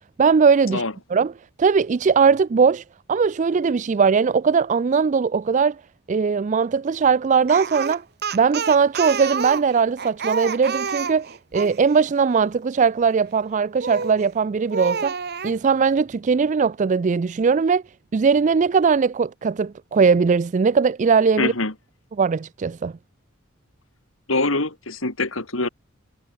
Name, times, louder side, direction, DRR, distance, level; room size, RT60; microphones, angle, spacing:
voice 1, 0.2-0.8 1.1-1.3 1.6-2.8 3.1-5.8 6.1-8.0 8.3-11.3 11.5-15.1 15.4-17.8 18.1-21.5 22.2-22.9, right 5 dB, 35° right, 0.4 m, -19 dB
Speech, 7.5-11.8 13.8-14.2 14.7-15.6, right 5 dB, 50° right, 1.8 m, -29 dB
voice 2, 21.4-21.7 24.3-25.7, left 2 dB, 70° left, 3.4 m, -24 dB
head